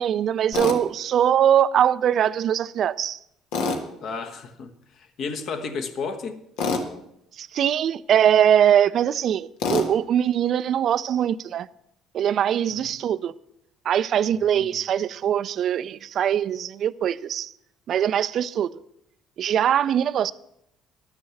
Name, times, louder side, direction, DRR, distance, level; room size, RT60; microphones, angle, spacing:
voice 1, 0.0-3.2 7.4-11.7 12.1-13.3 13.9-17.5 17.9-18.7 19.4-20.3, right 9 dB, 55° right, 0.4 m, -22 dB
Tools, 0.5-0.8 3.5-3.8 6.6-6.9 9.6-9.9, left 4 dB, 85° left, 1.5 m, -25 dB
voice 2, 4.0-6.4 12.7-12.9 14.3-14.8, left 4 dB, 60° left, 1.3 m, -33 dB
11.5 x 6.5 x 7.1 m
cardioid pair, 95°, 0 cm